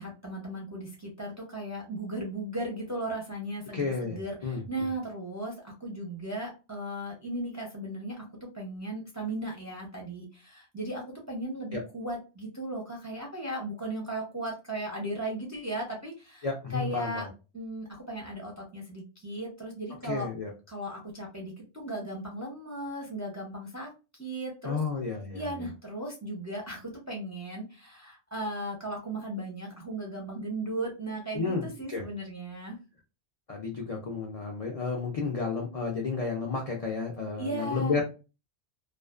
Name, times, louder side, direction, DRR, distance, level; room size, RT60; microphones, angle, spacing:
voice 1, 0.0-16.5 16.7-17.3 17.5-20.3 20.7-24.8 25.3-32.8 37.4-38.0, right 1 dB, 20° right, -1 dB, 0.4 m, -36 dB
voice 2, 3.7-4.9 11.7-11.8 16.4-17.3 20.0-20.5 24.6-25.7 31.3-32.0 33.5-38.0, left 4 dB, 50° left, -1 dB, 0.4 m, -32 dB
2.4 x 2.3 x 2.2 m, 0.30 s
omnidirectional pair, 1.2 m